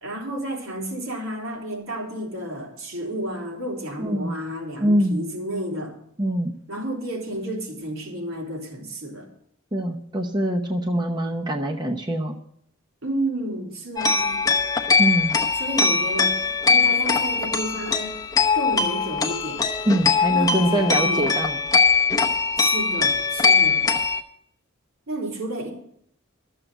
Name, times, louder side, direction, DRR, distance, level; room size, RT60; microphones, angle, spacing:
voice 1, 0.0-5.9 6.7-9.3 13.0-14.4 15.6-18.2 18.5-19.7 20.3-21.4 22.6-23.8 25.1-25.7, right 1 dB, 85° right, -1 dB, 3.7 m, -31 dB
voice 2, 4.0-4.4 4.8-5.2 6.2-6.5 9.7-12.4 15.0-15.4 19.8-21.6, equal, 20° right, 3 dB, 0.8 m, -23 dB
sound 1, 14.0-24.2, left 4 dB, 15° left, 0.8 m, -21 dB
13.0 x 7.5 x 8.0 m, 0.69 s
head